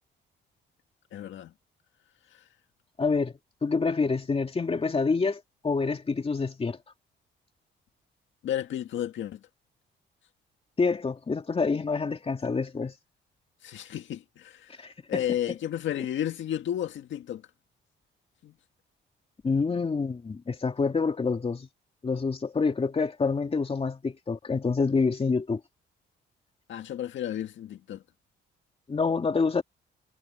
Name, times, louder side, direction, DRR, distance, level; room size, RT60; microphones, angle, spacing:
voice 1, 1.1-1.5 2.3-2.4 8.4-9.4 13.6-17.4 18.4-18.5 26.7-28.0, left 11 dB, 70° left, 1.8 m, -33 dB
voice 2, 3.0-6.8 10.8-12.9 14.8-15.2 19.4-21.7 22.0-25.6 28.9-29.6, left 4 dB, 30° left, 2.7 m, -27 dB
cardioid pair, 90°, 20 cm